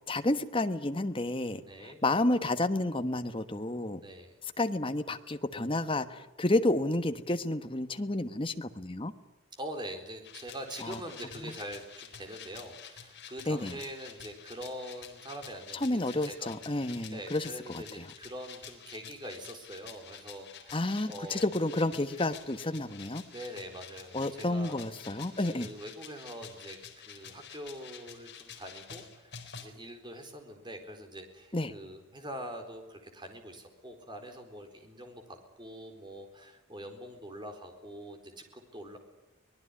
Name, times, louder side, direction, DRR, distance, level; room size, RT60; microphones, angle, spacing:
voice 1, 0.1-4.0 4.6-9.1 10.8-11.0 11.4-11.5 13.5-13.8 15.7-18.1 20.7-23.2 24.1-25.7 31.5-31.7, left 2 dB, 25° left, 9 dB, 1.3 m, -31 dB
voice 2, 1.7-2.0 4.0-4.3 9.5-16.6 17.1-21.5 23.3-24.9 25.1-25.2 25.5-39.0, equal, 20° right, 5 dB, 4.2 m, -44 dB
sound 1, 10.2-29.7, left 8 dB, 50° left, 4.0 m, -49 dB
24.5 x 20.0 x 9.9 m, 1.0 s
head